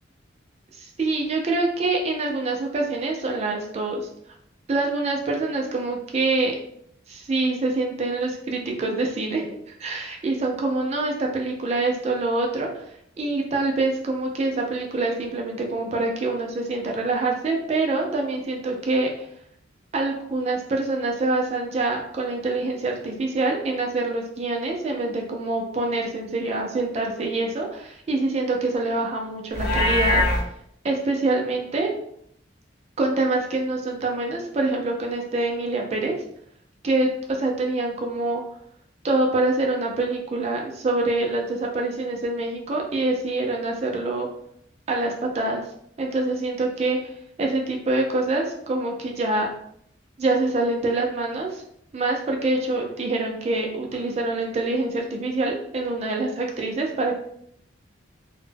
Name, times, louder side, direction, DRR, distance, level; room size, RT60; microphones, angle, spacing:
voice 1, 0.7-4.1 4.7-6.6 7.1-12.8 13.2-19.1 19.9-30.2 30.8-31.9 33.0-36.2 36.8-38.4 39.0-44.3 44.9-45.6 46.0-47.0 47.4-49.5 50.2-51.6 51.9-57.2, right 2 dB, 35° right, 1 dB, 0.3 m, -25 dB
Livestock farm animals working animals, 29.5-30.4, left 1 dB, 50° left, 0.7 m, -21 dB
2.1 x 2.1 x 3.2 m, 0.70 s
head